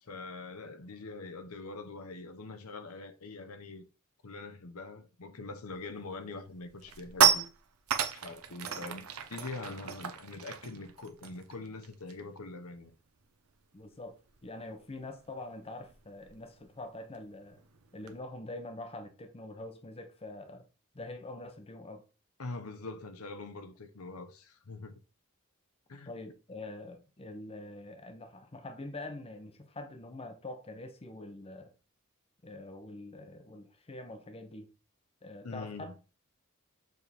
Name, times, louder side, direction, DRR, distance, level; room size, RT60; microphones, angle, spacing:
voice 1, 0.0-3.8 4.2-7.5 8.1-12.9 22.4-25.0 25.9-26.1 35.4-35.9, left 3 dB, 85° left, 0.9 m, -43 dB
sound 1, 5.8-6.1 6.5-12.4 12.7-12.9 13.2-18.2, right 8 dB, 80° right, 0.8 m, -33 dB
voice 2, 13.7-17.7 17.9-20.7 20.9-22.0 26.1-31.7 32.4-34.7 35.2-35.9, left 2 dB, 25° left, 0.7 m, -45 dB
6.7 x 3.5 x 4.3 m
head